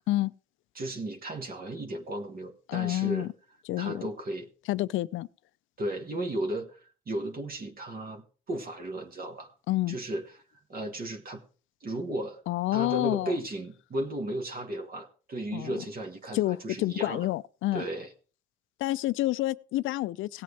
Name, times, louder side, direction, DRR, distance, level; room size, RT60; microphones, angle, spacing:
voice 1, 0.7-3.3 3.8-4.5 5.8-9.5 9.9-10.4 10.7-11.4 11.8-12.4 12.7-17.3 17.7-18.1, right 1 dB, 45° right, 1.5 m, -35 dB
voice 2, 2.7-3.3 3.7-4.0 4.7-5.3 9.7-10.0 12.5-13.3 15.5-15.7 16.3-17.8 18.8-20.4, left 16 dB, 80° left, 0.4 m, -28 dB
17.0 x 7.7 x 3.3 m
cardioid pair, 90°, 20 cm